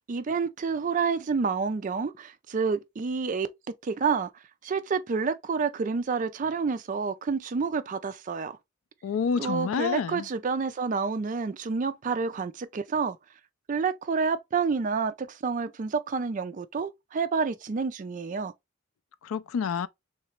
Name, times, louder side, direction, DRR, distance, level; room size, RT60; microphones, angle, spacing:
voice 1, 0.1-3.5 3.8-4.3 4.6-8.6 9.4-13.2 13.7-18.5, right 5 dB, 40° right, 0.3 m, -29 dB
voice 2, 9.0-10.3 19.2-19.9, left 6 dB, 80° left, 0.4 m, -28 dB
3.2 x 3.0 x 3.0 m
head